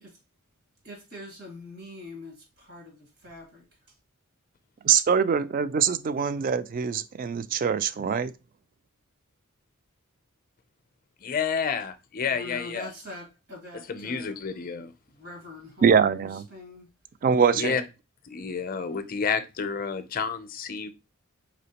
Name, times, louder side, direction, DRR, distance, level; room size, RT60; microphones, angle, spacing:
voice 1, 0.8-2.3 2.7-2.9 3.2-3.6 12.3-14.3 15.2-16.0 16.5-16.9, left 2 dB, 80° right, 2.2 m, -43 dB
voice 2, 4.8-8.3 15.8-16.4 17.2-17.8, right 7 dB, 40° right, 0.3 m, -23 dB
voice 3, 11.2-12.9 13.8-14.9 17.5-17.8 18.3-20.9, left 6 dB, 40° left, 0.5 m, -30 dB
4.2 x 3.4 x 2.9 m
head